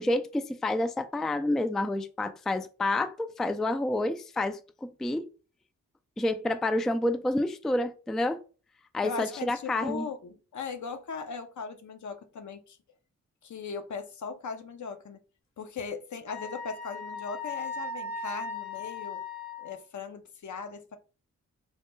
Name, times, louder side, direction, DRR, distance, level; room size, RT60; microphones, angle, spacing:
voice 1, 0.0-5.2 6.2-8.4 8.9-10.1, left 1 dB, ahead, 0.3 m, -29 dB
voice 2, 9.0-12.8 13.4-15.2 15.6-19.2 19.6-21.0, left 5 dB, 60° left, 0.6 m, -38 dB
Wind instrument woodwind instrument, 16.3-19.8, left 3 dB, 90° left, 1.0 m, -37 dB
3.1 x 2.1 x 3.1 m
cardioid pair, 45°, 33 cm